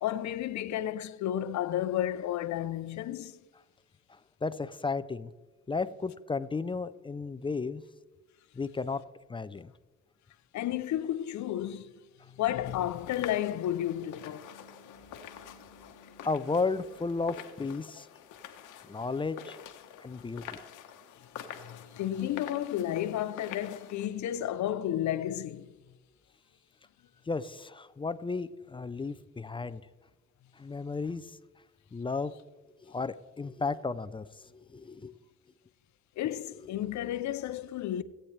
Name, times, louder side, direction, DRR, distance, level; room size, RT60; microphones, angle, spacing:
voice 1, 0.0-3.4 10.5-11.9 12.3-14.5 19.9-20.1 21.6-25.7 36.2-38.0, left 12 dB, 70° left, 0.6 m, -32 dB
voice 2, 4.1-5.3 5.7-7.8 8.5-9.0 9.3-9.7 16.2-18.1 18.9-19.6 20.0-20.6 27.3-29.8 30.6-31.4 31.9-32.3 32.8-35.1, left 4 dB, 15° left, 0.4 m, -34 dB
sound 1, 12.6-24.1, left 9 dB, 90° left, 1.0 m, -47 dB
16.0 x 8.7 x 3.3 m
cardioid pair, 90°, 30 cm